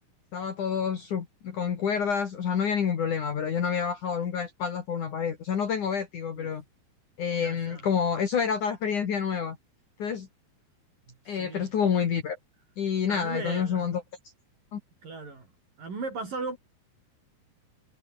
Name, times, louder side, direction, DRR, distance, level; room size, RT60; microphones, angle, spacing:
voice 1, 0.3-6.6 7.2-9.6 10.0-10.3 11.3-12.4 12.8-14.0 14.7-14.8, left 7 dB, 55° left, 3.6 m, -28 dB
voice 2, 7.4-7.9 11.1-11.9 13.1-13.9 15.0-15.5 15.8-16.6, right 4 dB, 55° right, 7.9 m, -37 dB
omnidirectional pair, 4.6 m